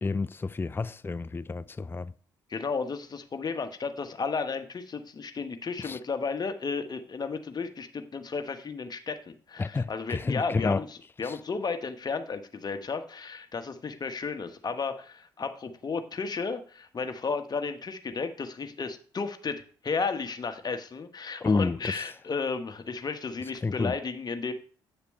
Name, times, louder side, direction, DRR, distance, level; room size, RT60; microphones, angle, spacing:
voice 1, 0.0-2.1 5.8-6.0 9.6-10.8 21.4-21.9 23.6-23.9, left 3 dB, 20° left, 0.5 m, -29 dB
voice 2, 2.5-24.5, left 4 dB, 40° left, 1.3 m, -33 dB
9.0 x 6.7 x 3.2 m
hypercardioid pair, 50°, 11 cm